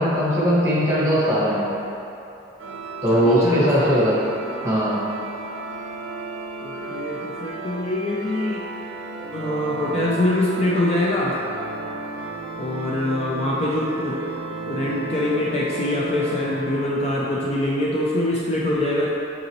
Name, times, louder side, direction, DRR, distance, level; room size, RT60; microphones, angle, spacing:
voice 1, 0.0-1.6 3.0-4.2 4.6-5.0, equal, 15° right, -8 dB, 1.5 m, -19 dB
sound 1, 2.6-17.5, right 3 dB, 85° right, 0.5 m, -33 dB
voice 2, 3.1-4.0 6.6-8.6 9.3-11.3 12.6-14.2 14.7-19.1, left 1 dB, 30° left, -5 dB, 0.5 m, -24 dB
7.8 x 4.0 x 3.0 m, 2.9 s
head